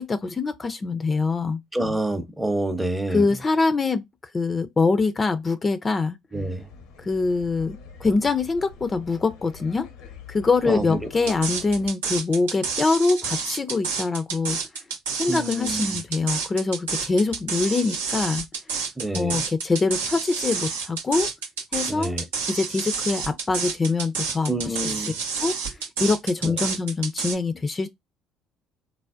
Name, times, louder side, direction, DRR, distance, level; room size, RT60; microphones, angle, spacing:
voice 1, 0.0-1.6 3.1-4.0 4.3-6.2 7.0-9.9 10.3-14.6 15.2-18.4 19.1-21.3 21.7-22.2 22.5-24.8 25.4-27.9, left 3 dB, 30° left, 0.4 m, -24 dB
voice 2, 1.7-3.4 6.3-6.7 10.7-11.1 15.2-16.0 19.0-19.5 21.9-22.2 24.5-25.2 26.4-26.5, right 1 dB, 10° right, 0.6 m, -28 dB
sound 1, 6.3-11.9, left 6 dB, 75° left, 0.6 m, -45 dB
sound 2, 11.3-27.3, right 5 dB, 85° right, 0.6 m, -29 dB
3.3 x 2.0 x 2.4 m
hypercardioid pair, 55°, 0 cm